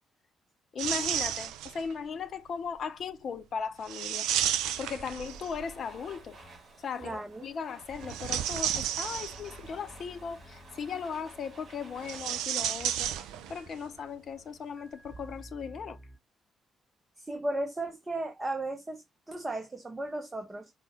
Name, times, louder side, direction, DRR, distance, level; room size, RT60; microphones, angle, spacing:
voice 1, 0.7-4.3 4.8-6.4 6.8-13.1 13.5-16.0, left 6 dB, 50° left, 0.5 m, -37 dB
sound 1, 0.8-1.9 3.9-5.7 7.9-9.7 12.0-13.7 14.0-14.1 15.1-15.2, right 10 dB, 65° right, 0.3 m, -32 dB
sound 2, 4.6-16.2, left 1 dB, ahead, 1.7 m, -54 dB
Domestic sounds home sounds, 5.0-13.9, right 3 dB, 45° right, 1.6 m, -54 dB
voice 2, 7.0-7.4 17.2-20.7, right 2 dB, 20° right, 0.8 m, -35 dB
5.2 x 2.2 x 3.0 m
figure-of-eight pair, 40°, 0 cm